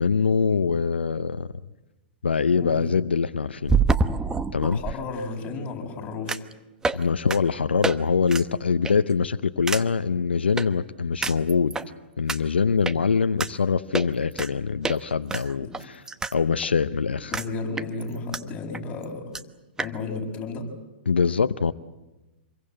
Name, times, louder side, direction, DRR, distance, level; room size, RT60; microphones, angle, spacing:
voice 1, 0.0-1.5 2.2-3.8 4.5-4.8 6.9-11.8 12.2-16.0 16.3-17.3 21.1-21.7, left 5 dB, 85° left, 12 dB, 0.8 m, -23 dB
sound 1, 1.2-1.3 3.7-5.0 6.3-6.5 6.8-7.0 7.3-7.4 7.8-8.0 8.3-8.4 8.8-9.1 9.7-9.8 10.6-10.7 11.2-11.9 12.3-12.4 12.8-13.0 13.4-13.5 13.9-14.5 14.8-15.0 15.3-16.3 16.6-16.7 17.3-17.5 17.8-18.4 18.7-18.8 19.0-19.1 19.3-19.4 19.8-19.9, right 4 dB, 10° right, 1.0 m, -26 dB
voice 2, 2.5-2.8 4.7-6.4 15.6-15.7 17.2-19.4 19.8-20.7, left 3 dB, 25° left, 0 dB, 7.0 m, -33 dB
27.0 x 22.5 x 7.8 m, 1.1 s
hypercardioid pair, 115°, 6 cm